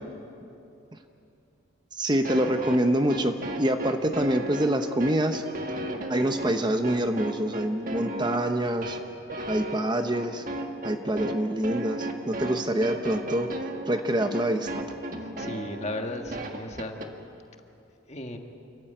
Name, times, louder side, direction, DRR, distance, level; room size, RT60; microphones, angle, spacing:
voice 1, 1.9-5.4 6.1-9.0 9.5-10.4 10.8-13.5 13.9-14.8, right 1 dB, 20° right, 6 dB, 0.8 m, -26 dB
sound 1, 2.2-17.1, right 1 dB, 40° right, 1.7 m, -35 dB
voice 2, 15.1-17.0 18.1-18.4, left 1 dB, 35° left, 4 dB, 1.6 m, -35 dB
28.0 x 15.0 x 9.1 m, 2.7 s
head